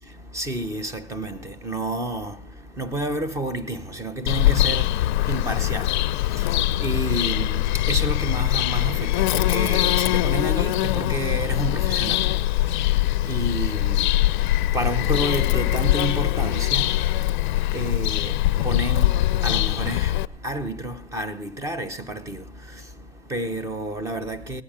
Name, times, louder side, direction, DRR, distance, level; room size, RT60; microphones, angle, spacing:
voice 1, 0.1-24.6, right 1 dB, 10° right, 0.8 m, -31 dB
Bird vocalization bird call bird song, 4.3-20.3, left 15 dB, 50° left, 0.5 m, -22 dB
19.0 x 10.0 x 5.1 m
hypercardioid pair, 130°, 31 cm